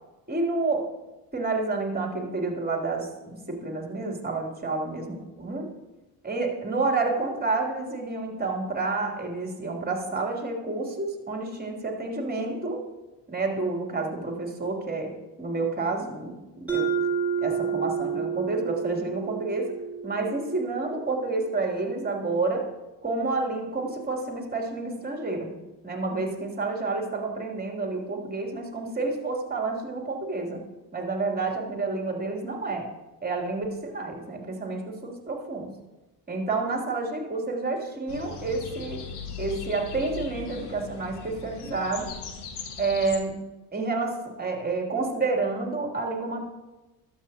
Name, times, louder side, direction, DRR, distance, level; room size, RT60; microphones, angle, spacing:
voice 1, 0.3-0.9 1.3-5.7 6.2-12.8 13.3-15.1 15.4-16.9 17.4-19.7 20.0-22.7 23.0-25.6 25.8-30.6 30.9-32.9 33.2-35.7 36.3-39.0 39.4-42.1 42.8-46.5, right 3 dB, 20° right, 0 dB, 3.0 m, -29 dB
Mallet percussion, 16.7-21.2, right 6 dB, 5° right, 3.4 m, -30 dB
sound 1, 38.1-43.2, left 6 dB, 55° left, 1.8 m, -39 dB
21.0 x 7.7 x 2.9 m, 1.1 s
figure-of-eight pair, 50°, 48 cm